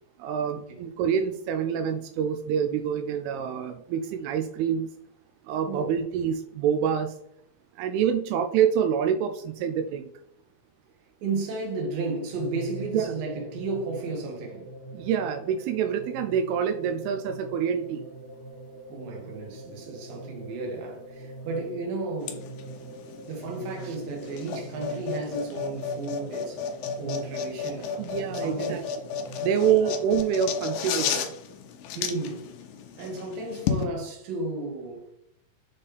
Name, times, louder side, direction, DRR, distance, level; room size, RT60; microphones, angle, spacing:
voice 1, 0.2-4.9 5.5-7.1 7.8-10.1 12.9-13.1 14.9-18.0 28.0-28.8 29.4-31.2, right 8 dB, 90° right, 2.5 m, -26 dB
voice 2, 11.2-14.7 18.9-22.5 23.1-28.9 29.6-29.9 31.9-32.5 33.0-35.1, right 3 dB, 70° right, 3.1 m, -34 dB
sound 1, 12.3-29.9, right 2 dB, 30° left, 2.2 m, -43 dB
sound 2, 22.2-33.8, left 6 dB, 85° left, 2.5 m, -33 dB
7.3 x 4.1 x 3.4 m
omnidirectional pair, 4.3 m